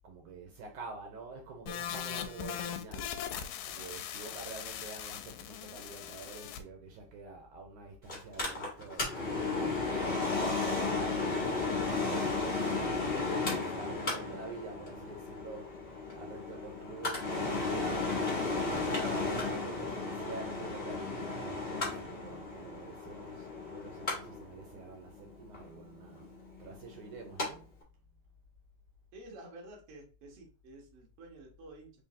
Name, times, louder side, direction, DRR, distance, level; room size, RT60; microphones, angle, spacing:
voice 1, 0.0-3.2 3.6-9.1 9.8-15.8 16.1-18.2 18.7-26.3 26.6-27.7, right 4 dB, 75° right, 2.1 m, -47 dB
sound 1, 1.7-6.6, left 9 dB, 85° left, 2.2 m, -40 dB
Mechanical fan, 8.1-27.5 27.8-27.9, left 3 dB, 40° left, 0.8 m, -34 dB
voice 2, 29.1-31.9, right 2 dB, 55° right, 1.8 m, -51 dB
5.0 x 3.6 x 2.7 m
omnidirectional pair, 3.8 m